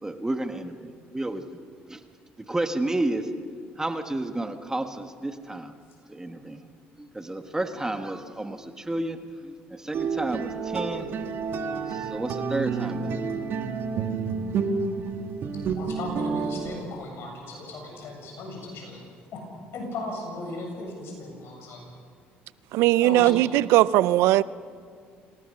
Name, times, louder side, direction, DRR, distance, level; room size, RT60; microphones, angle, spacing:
voice 1, 0.0-1.4 1.9-2.0 2.4-3.3 3.8-5.7 6.1-6.6 7.0-11.1 11.9-13.3, right 1 dB, 15° right, 7 dB, 1.4 m, -31 dB
sound 1, 9.9-16.8, right 5 dB, 55° right, 1.9 m, -29 dB
voice 2, 15.8-19.0 19.3-19.4 19.7-21.8 23.0-23.4, left 2 dB, 65° left, 2 dB, 7.6 m, -36 dB
voice 3, 22.7-24.4, right 16 dB, 75° right, 19 dB, 0.5 m, -19 dB
26.5 x 18.5 x 6.6 m, 2.1 s
supercardioid pair, 80°, 4 cm